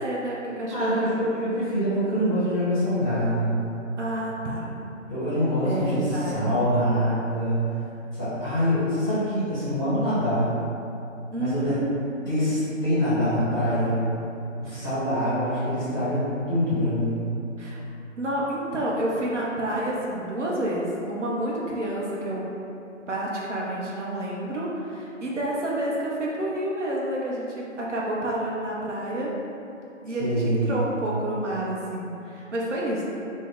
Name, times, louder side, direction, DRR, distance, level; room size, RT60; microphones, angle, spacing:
voice 1, 0.0-1.1 4.0-4.7 5.6-6.7 11.3-12.3 14.6-14.9 17.6-17.8 18.2-22.5 23.1-29.3 30.0-33.0, right 1 dB, 65° right, -4 dB, 0.6 m, -29 dB
voice 2, 0.7-3.6 5.1-7.6 8.1-10.5 11.4-11.7 12.2-14.0 14.6-16.2 16.5-17.1 30.2-30.8, equal, 15° left, -14 dB, 0.9 m, -25 dB
2.4 x 2.1 x 3.4 m, 2.7 s
figure-of-eight pair, 150°, 39 cm